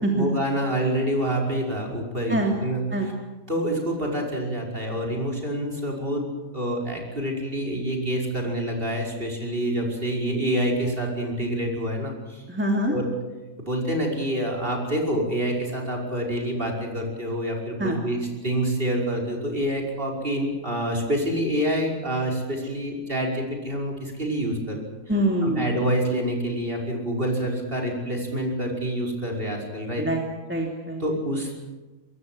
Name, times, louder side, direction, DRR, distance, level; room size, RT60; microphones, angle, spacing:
voice 1, 0.1-3.1 3.5-6.2 6.5-12.5 12.9-13.0 13.6-24.8 25.4-30.1 31.0-31.5, right 1 dB, 40° right, 1 dB, 5.8 m, -27 dB
voice 2, 12.5-12.9 17.8-18.0 25.1-25.7 30.0-30.2 30.5-31.0, right 1 dB, 10° right, 0 dB, 2.8 m, -24 dB
24.5 x 22.0 x 7.8 m, 1.2 s
omnidirectional pair, 1.5 m